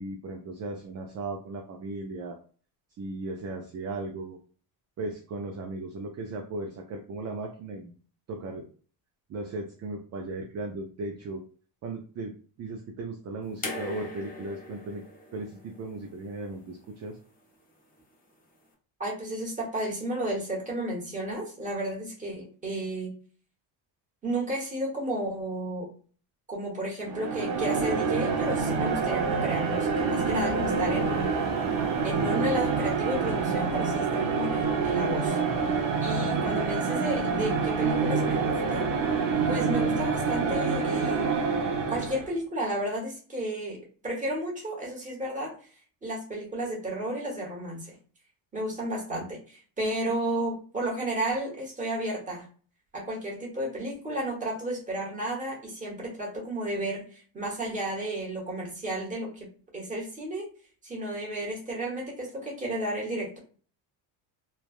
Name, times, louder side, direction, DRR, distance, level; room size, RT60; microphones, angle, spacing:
voice 1, 0.0-2.4 3.0-4.4 5.0-8.0 8.3-8.6 9.3-11.4 11.8-15.0 15.3-17.2, right 2 dB, 35° right, 2 dB, 0.4 m, -36 dB
sound 1, 13.6-16.8 18.0-18.1, left 2 dB, 20° left, 0.5 m, -40 dB
voice 2, 19.0-23.2 24.2-25.9 26.5-31.3 32.0-35.4 36.0-38.9 39.4-41.3 41.9-45.5 46.0-48.0 48.5-52.5 52.9-59.5 59.7-60.5 60.8-63.4, right 1 dB, 15° right, -3 dB, 1.1 m, -32 dB
sound 2, 27.0-42.3, right 5 dB, 85° right, 0.9 m, -27 dB
3.2 x 2.2 x 2.4 m, 0.41 s
cardioid pair, 145°, 46 cm